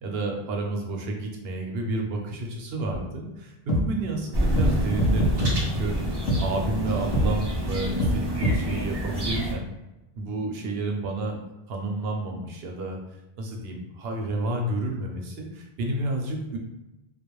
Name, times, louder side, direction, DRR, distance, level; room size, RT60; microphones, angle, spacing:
voice 1, 0.0-9.7 10.2-11.4 11.7-13.0 13.4-16.6, right 2 dB, 75° right, 1 dB, 0.8 m, -30 dB
sound 1, 2.9-3.0 3.7-3.8 4.6-4.7 5.0-5.5 6.3-6.4 7.1-7.3 8.0-8.1 8.4-8.6, left 1 dB, 80° left, 0.8 m, -23 dB
sound 2, 4.3-9.5, right 1 dB, 40° right, 0.3 m, -28 dB
2.3 x 2.1 x 2.9 m, 0.99 s
omnidirectional pair, 1.0 m